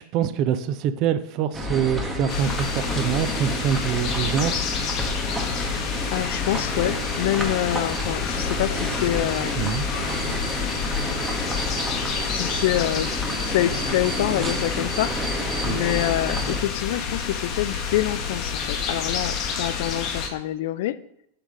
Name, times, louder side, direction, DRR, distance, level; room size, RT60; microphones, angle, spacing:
voice 1, 0.0-4.6 9.6-9.8 15.6-15.8, right 9 dB, 40° right, 13 dB, 0.4 m, -25 dB
sound 1, 1.5-16.6, equal, 10° right, 1.0 m, -30 dB
sound 2, 2.3-20.3, left 6 dB, 35° left, 0.8 m, -29 dB
voice 2, 6.1-9.8 12.3-13.2 13.4-15.3 15.6-21.0, left 14 dB, 50° left, 14 dB, 0.3 m, -26 dB
5.7 x 3.5 x 5.0 m, 0.75 s
figure-of-eight pair, 90°, 0 cm